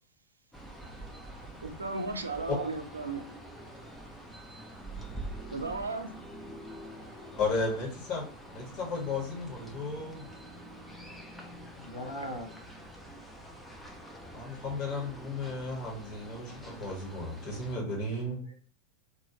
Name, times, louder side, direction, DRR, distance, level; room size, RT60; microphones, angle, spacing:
sound 1, 0.5-17.7, right 1 dB, 5° left, 0.6 m, -46 dB
voice 1, 1.6-3.2 5.5-6.1, right 3 dB, 75° right, 0.5 m, -35 dB
voice 2, 7.4-8.2 8.5-10.2 14.3-18.4, left 3 dB, 40° left, 1.5 m, -34 dB
voice 3, 11.7-12.6 17.4-17.6 18.4-18.5, equal, 75° left, 0.9 m, -41 dB
2.8 x 2.7 x 2.8 m
figure-of-eight pair, 90°, 0 cm